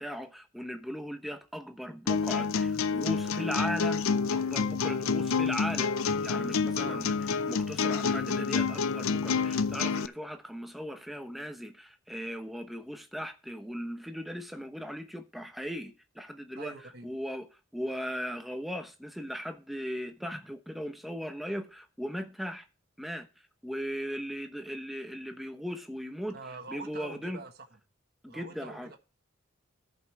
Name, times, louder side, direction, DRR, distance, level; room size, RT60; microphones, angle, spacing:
voice 1, 0.0-4.1 4.3-5.9 6.2-7.1 7.5-16.7 17.0-17.5 17.7-22.7 23.0-23.3 23.6-26.4 26.7-27.4 28.2-28.9, equal, ahead, 0.9 m, -38 dB
sound 1, 2.1-10.1, left 5 dB, 75° left, 0.5 m, -28 dB
voice 2, 6.7-7.0 16.6-17.1 26.3-27.8 28.3-29.0, right 3 dB, 50° right, 1.3 m, -44 dB
13.5 x 5.5 x 4.7 m
head